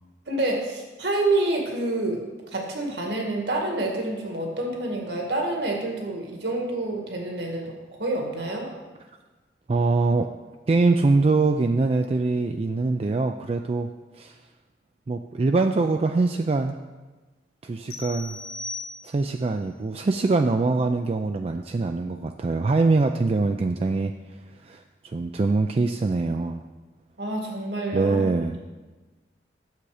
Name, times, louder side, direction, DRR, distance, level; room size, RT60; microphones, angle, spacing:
voice 1, 0.3-2.2 2.5-7.7 8.0-8.7 27.2-28.3, right 2 dB, 75° right, 1 dB, 1.9 m, -27 dB
voice 2, 9.7-10.4 10.7-14.4 15.1-16.8 17.6-18.4 19.0-24.1 24.6-26.6 27.9-28.6, right 3 dB, 35° right, 6 dB, 0.3 m, -23 dB
sound 1, 17.9-19.4, left 2 dB, 60° left, 1.5 m, -37 dB
9.4 x 7.3 x 4.9 m, 1.2 s
head